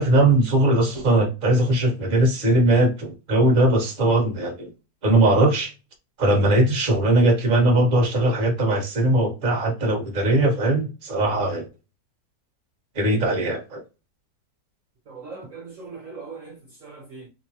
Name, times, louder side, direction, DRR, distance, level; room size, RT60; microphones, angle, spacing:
voice 1, 0.0-4.7 5.0-5.7 6.2-11.7 12.9-13.8, right 1 dB, 35° right, 1.0 m, -20 dB
voice 2, 15.1-17.3, right 4 dB, 55° right, 1.0 m, -40 dB
3.0 x 2.2 x 2.7 m
omnidirectional pair, 1.8 m